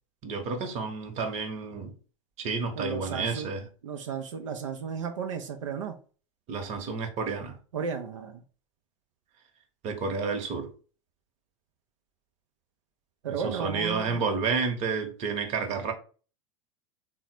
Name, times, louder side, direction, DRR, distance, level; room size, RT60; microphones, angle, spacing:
voice 1, 0.2-1.9 2.4-3.6 6.5-7.6 9.8-10.7 13.3-15.9, right 4 dB, 40° right, 1.0 m, -30 dB
voice 2, 2.8-3.5 3.8-6.0 7.7-8.4 13.2-14.3, right 6 dB, 70° right, 0.5 m, -34 dB
3.9 x 2.1 x 4.3 m
figure-of-eight pair, 85°, 17 cm